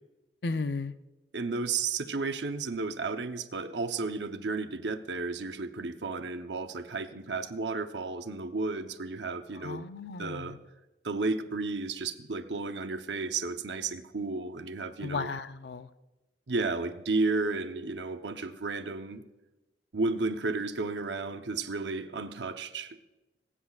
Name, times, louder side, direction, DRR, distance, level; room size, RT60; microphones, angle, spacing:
voice 1, 0.4-0.9 9.6-10.6 15.0-15.9, left 4 dB, 65° left, 12 dB, 0.6 m, -34 dB
voice 2, 1.3-9.8 10.2-10.6 11.0-15.3 16.5-19.2 19.9-23.0, right 3 dB, 80° right, 8 dB, 0.8 m, -33 dB
28.5 x 10.0 x 2.4 m, 1.0 s
head